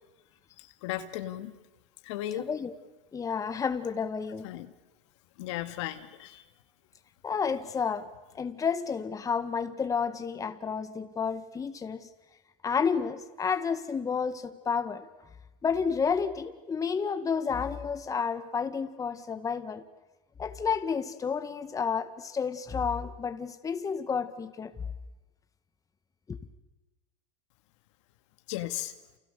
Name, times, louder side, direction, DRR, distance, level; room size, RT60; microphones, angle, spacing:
voice 1, 0.8-1.5 2.0-2.5 4.4-4.7 5.4-6.4 28.5-28.9, left 13 dB, 70° left, 2.0 m, -35 dB
voice 2, 2.4-2.7 3.1-4.5 7.2-12.1 12.6-15.1 15.6-19.8 20.4-24.7 26.3-26.4, left 6 dB, 20° left, 1.7 m, -31 dB
29.0 x 28.5 x 6.9 m
hypercardioid pair, 105°, 16 cm